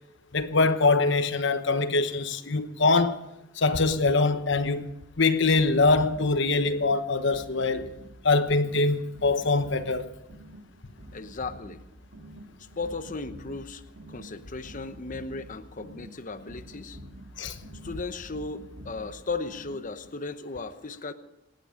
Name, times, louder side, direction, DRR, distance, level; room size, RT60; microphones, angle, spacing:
voice 1, 0.3-3.2 3.6-4.9 5.2-7.9 8.2-10.1 17.4-17.6, left 3 dB, 60° left, 1.1 m, -23 dB
sound 1, 5.5-20.1, right 1 dB, 85° right, 2.9 m, -48 dB
voice 2, 11.1-11.8 12.6-13.8 14.1-17.0 17.8-21.1, left 3 dB, 40° left, 0.9 m, -36 dB
26.0 x 10.0 x 5.1 m
head